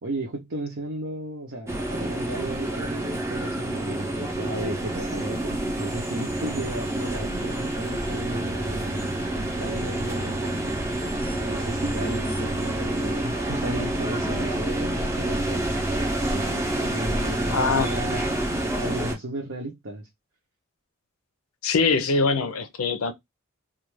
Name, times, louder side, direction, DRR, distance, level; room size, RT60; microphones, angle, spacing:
voice 1, 0.0-10.6 11.4-15.7 16.2-18.2 18.6-20.1, right 1 dB, 60° right, 0.7 m, -34 dB
sound 1, 1.7-19.2, right 1 dB, 15° right, 0.6 m, -28 dB
voice 2, 17.5-17.9 21.6-23.1, left 4 dB, 80° left, 0.5 m, -23 dB
2.4 x 2.3 x 3.0 m
head